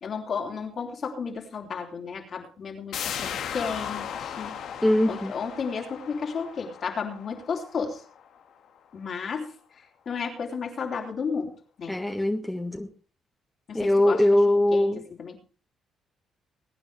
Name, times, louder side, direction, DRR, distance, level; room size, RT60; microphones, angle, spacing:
voice 1, 0.0-4.6 5.1-8.0 8.9-9.5 10.1-12.0 13.7-14.9 15.2-15.4, left 5 dB, 50° left, 1 dB, 3.6 m, -33 dB
sound 1, 2.9-8.4 8.8-8.9, left 8 dB, 80° left, 2.1 m, -36 dB
voice 2, 4.8-5.3 11.9-12.9 13.7-15.0, left 1 dB, 10° left, 2 dB, 1.8 m, -22 dB
22.0 x 9.8 x 3.4 m, 0.39 s
cardioid pair, 90°, 0 cm